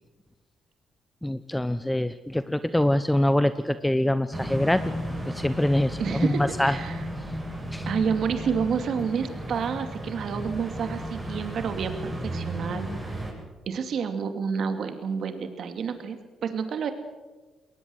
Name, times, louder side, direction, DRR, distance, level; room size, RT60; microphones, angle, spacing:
voice 1, 1.2-4.8 5.3-6.8 7.7-7.9, left 1 dB, 5° left, 13 dB, 0.7 m, -24 dB
sound 1, 4.3-13.3, equal, 20° right, 7.7 m, -34 dB
voice 2, 6.0-7.0 7.9-13.2 13.7-16.9, right 6 dB, 60° right, 8 dB, 2.5 m, -29 dB
21.0 x 19.0 x 7.9 m, 1.2 s
cardioid pair, 90°, 0 cm